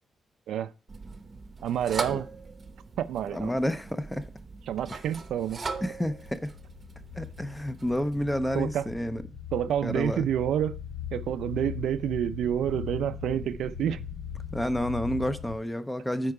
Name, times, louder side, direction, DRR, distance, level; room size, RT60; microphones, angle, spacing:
sound 1, 0.9-8.2, right 4 dB, 25° right, 0.8 m, -40 dB
voice 1, 1.6-2.3 3.0-3.5 4.7-5.6 8.5-8.9 9.5-10.8 11.1-14.0, right 10 dB, 80° right, 0.4 m, -28 dB
voice 2, 3.3-4.3 5.8-6.5 7.2-9.2 9.8-10.2 14.5-16.3, equal, 5° left, 0.5 m, -30 dB
sound 2, 5.7-15.6, left 8 dB, 85° left, 1.9 m, -40 dB
9.8 x 4.6 x 4.8 m
wide cardioid pair, 170°, 0 cm